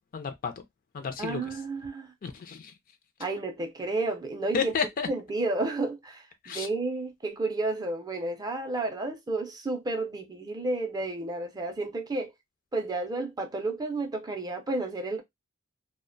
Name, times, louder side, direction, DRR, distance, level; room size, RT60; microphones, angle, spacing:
voice 1, 0.1-0.6 0.9-1.5 2.2-2.7 4.5-5.1 6.4-6.7, left 6 dB, 45° left, 0.4 m, -31 dB
voice 2, 1.2-2.1 3.2-4.7 5.1-12.3 12.7-15.2, right 2 dB, 20° right, 0.4 m, -31 dB
2.4 x 2.1 x 2.5 m
head